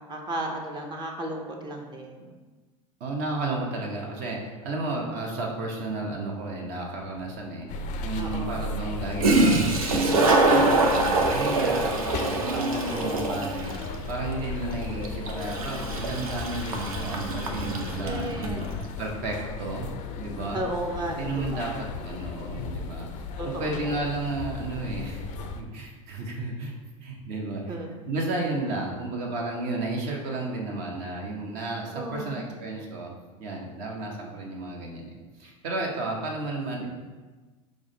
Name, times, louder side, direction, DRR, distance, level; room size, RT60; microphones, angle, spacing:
voice 1, 0.0-2.3 8.2-8.8 12.9-13.4 18.0-18.6 20.5-21.9 23.4-24.1 27.6-27.9 31.9-32.4 34.2-34.4, right 1 dB, 25° right, 1 dB, 0.6 m, -34 dB
voice 2, 3.0-18.7 19.0-19.9 20.2-20.6 21.2-23.1 23.4-25.2 25.5-26.7 27.0-27.8 28.1-33.1 33.4-36.9, right 2 dB, 55° right, 0 dB, 0.9 m, -33 dB
Toilet flush, 7.2-7.3 8.9-9.0 9.2-18.6, right 2 dB, 85° right, 0.6 m, -24 dB
sound 1, 7.7-25.6, left 3 dB, 45° left, 0.4 m, -36 dB
4.9 x 2.1 x 3.8 m, 1.3 s
hypercardioid pair, 90°, 18 cm